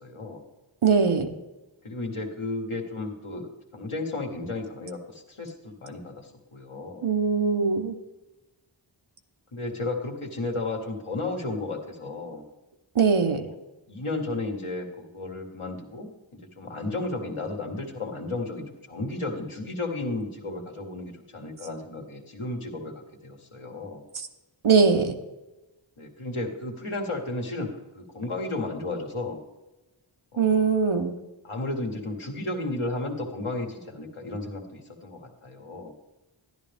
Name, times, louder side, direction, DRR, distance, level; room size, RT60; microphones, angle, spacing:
voice 1, 0.0-0.4 1.8-3.5 3.7-7.1 9.5-12.4 13.4-13.5 13.9-16.1 16.6-22.9 23.2-24.0 26.0-29.4 30.3-30.7 31.4-35.9, left 2 dB, 80° left, 2 dB, 1.6 m, -33 dB
voice 2, 0.8-1.3 7.0-7.9 12.9-13.4 24.1-24.3 24.6-25.1 30.4-31.1, right 5 dB, 85° right, 6 dB, 1.0 m, -21 dB
12.0 x 10.5 x 3.5 m, 1.1 s
wide cardioid pair, 40°, 49 cm